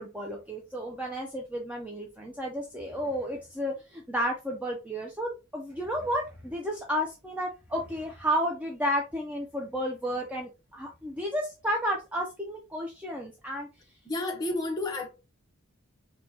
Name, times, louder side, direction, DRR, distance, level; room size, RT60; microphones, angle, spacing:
voice 1, 0.0-13.7, equal, 5° right, 0.4 m, -32 dB
voice 2, 14.0-15.1, left 2 dB, 15° left, 0.7 m, -31 dB
4.3 x 2.2 x 2.7 m
head